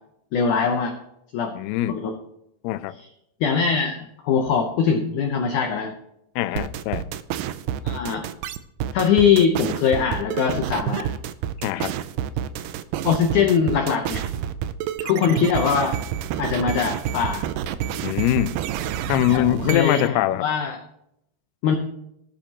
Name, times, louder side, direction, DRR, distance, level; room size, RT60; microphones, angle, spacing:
voice 1, 0.3-1.0 1.3-1.5 1.9-2.1 3.0-3.1 3.4-4.0 4.2-5.9 7.8-8.2 8.9-11.1 13.0-14.2 15.0-16.0 16.4-17.5 19.3-20.8 21.6-21.8, left 6 dB, 70° left, 1.9 m, -22 dB
voice 2, 1.5-2.0 2.6-3.0 6.4-7.1 11.6-11.9 18.0-18.6 19.1-20.5, left 14 dB, 85° left, 2.6 m, -23 dB
sound 1, 6.6-20.1, right 10 dB, 85° right, 1.9 m, -28 dB
18.0 x 9.2 x 3.0 m
omnidirectional pair, 4.6 m